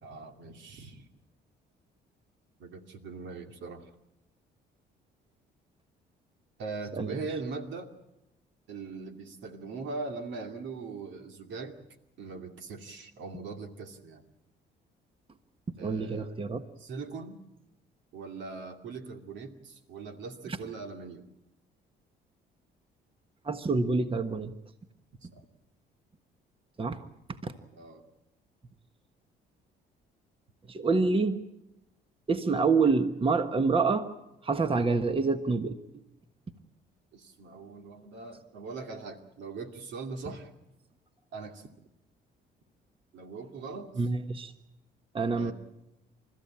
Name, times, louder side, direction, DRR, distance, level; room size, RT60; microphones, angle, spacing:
voice 1, 0.0-1.1 2.6-3.9 6.6-7.9 8.7-11.8 12.2-14.2 15.8-16.4 16.8-17.4 18.1-21.3 25.3-25.4 27.8-28.0 37.1-40.5 41.3-41.7 43.1-44.1 45.3-45.5, right 4 dB, 75° right, 6 dB, 2.5 m, -41 dB
voice 2, 15.8-16.6 23.4-24.5 26.8-27.0 27.4-27.5 30.7-31.4 32.3-34.0 34.4-35.7 44.0-44.5 45.1-45.5, right 4 dB, 30° right, 9 dB, 1.4 m, -27 dB
29.5 x 14.0 x 8.7 m, 0.91 s
cardioid pair, 85°, 19 cm